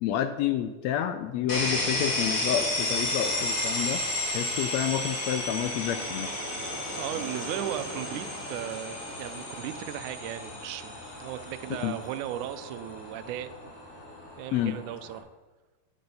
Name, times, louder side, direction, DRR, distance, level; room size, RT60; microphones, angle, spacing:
voice 1, 0.0-4.0 4.3-6.3 11.8-12.0 14.5-14.8, left 10 dB, 80° left, 9 dB, 1.6 m, -29 dB
sound 1, 1.5-15.2, left 2 dB, 40° left, 2.6 m, -33 dB
sound 2, 1.5-9.9, right 1 dB, 30° right, 1.3 m, -43 dB
voice 2, 7.0-13.7 14.4-15.3, right 12 dB, 85° right, 13 dB, 2.1 m, -36 dB
9.6 x 7.7 x 5.4 m, 1.2 s
omnidirectional pair, 3.5 m